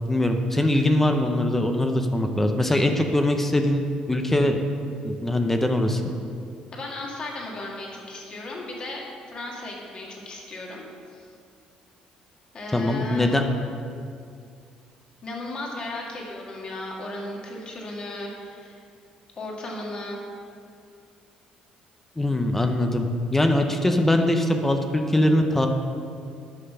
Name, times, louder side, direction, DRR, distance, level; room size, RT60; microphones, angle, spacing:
voice 1, 0.1-4.6 5.0-6.0 12.7-13.4 22.2-25.7, left 1 dB, 10° left, 5 dB, 0.7 m, -22 dB
voice 2, 6.7-10.8 11.1-11.3 12.5-13.4 15.2-18.8 19.4-20.2, left 2 dB, 40° left, -2 dB, 2.0 m, -35 dB
10.0 x 5.7 x 5.6 m, 2.3 s
cardioid pair, 110°, 2 cm